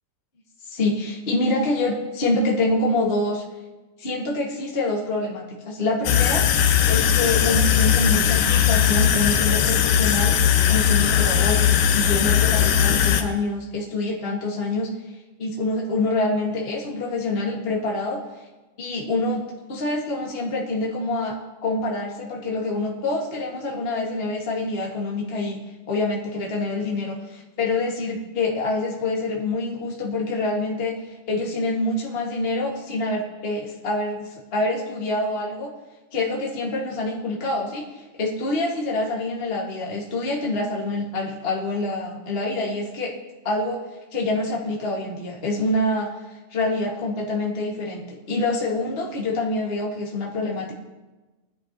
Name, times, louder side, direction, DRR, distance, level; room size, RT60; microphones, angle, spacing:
voice 1, 0.7-3.4 4.0-14.9 15.4-18.2 18.8-19.4 19.7-21.3 21.6-25.6 25.9-35.7 36.1-43.1 43.4-43.8 44.1-46.1 46.5-50.7, left 2 dB, 25° left, -2 dB, 1.5 m, -26 dB
sound 1, 6.1-13.2, left 9 dB, 80° left, 2.4 m, -19 dB
21.0 x 11.0 x 3.0 m, 1.1 s
omnidirectional pair, 3.8 m